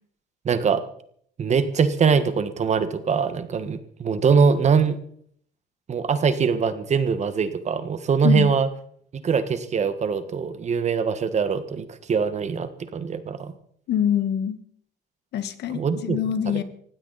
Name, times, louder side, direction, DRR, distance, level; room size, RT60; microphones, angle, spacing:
voice 1, 0.4-0.8 1.4-5.0 5.9-8.7 9.2-13.5 15.7-16.2 16.5-16.6, right 6 dB, 40° right, 11 dB, 1.6 m, -22 dB
voice 2, 13.9-14.6 15.3-16.6, left 9 dB, 80° left, 11 dB, 1.6 m, -24 dB
19.5 x 15.5 x 4.2 m, 0.63 s
cardioid pair, 120°, 17 cm